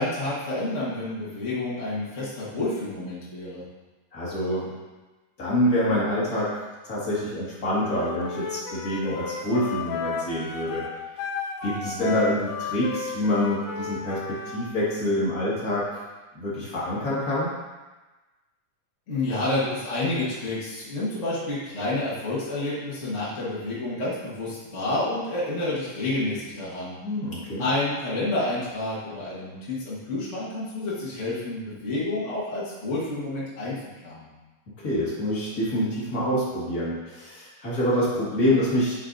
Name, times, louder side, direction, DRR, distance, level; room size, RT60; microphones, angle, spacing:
voice 1, 0.0-3.6 11.6-12.0 19.1-27.0 27.6-33.8 34.0-34.3, left 2 dB, 60° left, -8 dB, 0.7 m, -29 dB
voice 2, 4.1-4.7 5.4-6.6 6.8-10.8 11.6-16.0 16.3-17.5 27.0-27.6 34.8-38.9, left 1 dB, 35° left, -8 dB, 1.6 m, -26 dB
Wind instrument woodwind instrument, 7.8-14.6, left 5 dB, 85° left, 2.1 m, -33 dB
7.9 x 5.5 x 2.6 m, 1.2 s
omnidirectional pair, 3.6 m